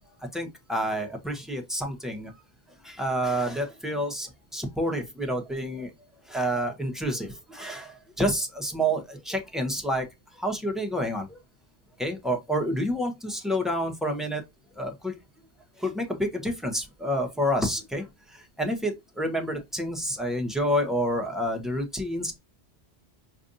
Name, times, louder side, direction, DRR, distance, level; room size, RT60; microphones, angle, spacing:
voice 1, 0.3-2.3 2.8-5.9 6.3-10.1 10.4-11.4 12.0-14.4 14.8-15.1 15.8-22.4, equal, ahead, 0.7 m, -29 dB
5.1 x 2.5 x 2.5 m
omnidirectional pair, 1.1 m